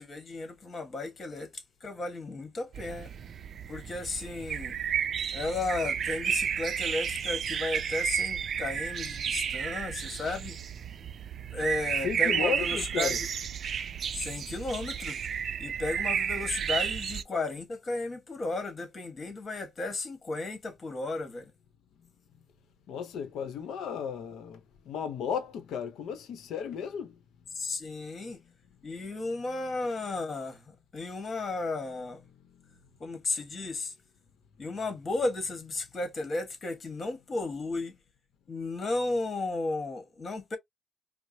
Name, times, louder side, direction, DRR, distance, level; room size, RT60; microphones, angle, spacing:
voice 1, 0.0-3.1 3.7-4.8 5.3-10.6 11.4-13.3 14.1-15.2 15.6-21.5 27.5-28.4 28.8-32.2 33.0-33.9 34.6-38.0 38.5-40.6, left 2 dB, 40° left, 1.4 m, -34 dB
sound 1, 2.7-17.2, right 8 dB, 55° right, 0.4 m, -32 dB
voice 2, 12.0-13.2 22.9-27.2 32.5-32.6, left 7 dB, 80° left, 0.8 m, -34 dB
4.6 x 2.0 x 2.7 m
cardioid pair, 90°, 0 cm